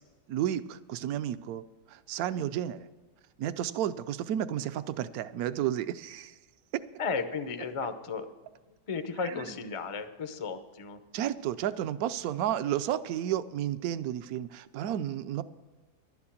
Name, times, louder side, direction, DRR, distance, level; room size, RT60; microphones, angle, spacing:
voice 1, 0.3-1.6 1.9-2.9 3.4-6.4 9.2-9.4 11.1-15.4, right 11 dB, 70° right, 13 dB, 1.0 m, -32 dB
voice 2, 7.0-8.3 8.7-11.0, left 5 dB, 40° left, 8 dB, 0.4 m, -34 dB
11.5 x 9.7 x 7.2 m, 1.3 s
omnidirectional pair, 1.8 m